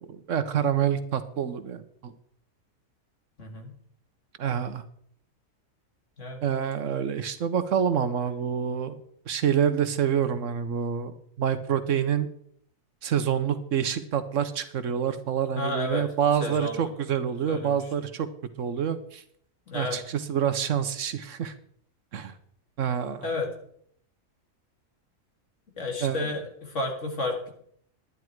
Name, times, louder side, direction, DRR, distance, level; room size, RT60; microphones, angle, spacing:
voice 1, 0.1-2.1 4.4-4.8 6.4-9.0 9.3-12.3 13.0-18.3 18.6-19.2 19.7-21.5 22.1-22.3 22.8-23.3 26.0-26.3, right 8 dB, 65° right, 11 dB, 1.1 m, -27 dB
voice 2, 3.4-3.7 6.2-6.4 15.5-16.0 16.4-16.9 17.5-17.8 19.7-20.0 23.2-23.5 25.8-27.5, left 2 dB, 60° left, 3 dB, 2.4 m, -31 dB
11.0 x 10.5 x 4.6 m, 0.66 s
omnidirectional pair, 1.4 m